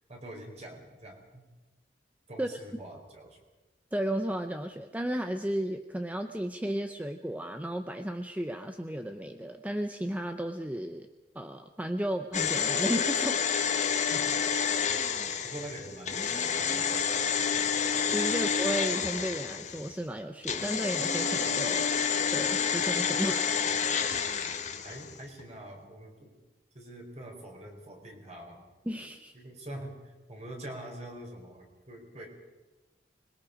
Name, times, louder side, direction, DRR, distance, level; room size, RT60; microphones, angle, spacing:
voice 1, 0.1-1.4 2.3-3.4 14.1-14.4 15.4-16.6 16.9-17.1 18.3-18.4 24.8-26.3 26.7-28.7 29.3-32.3, right 1 dB, 40° right, 2 dB, 4.4 m, -45 dB
voice 2, 3.9-11.1 11.3-13.4 18.1-21.9 22.3-23.5 28.9-29.3, right 1 dB, 10° right, 6 dB, 0.7 m, -33 dB
sound 1, 12.3-19.9 20.4-25.1 25.4-25.5, left 6 dB, 45° left, 1.5 m, -29 dB
26.0 x 21.5 x 5.2 m, 1.2 s
head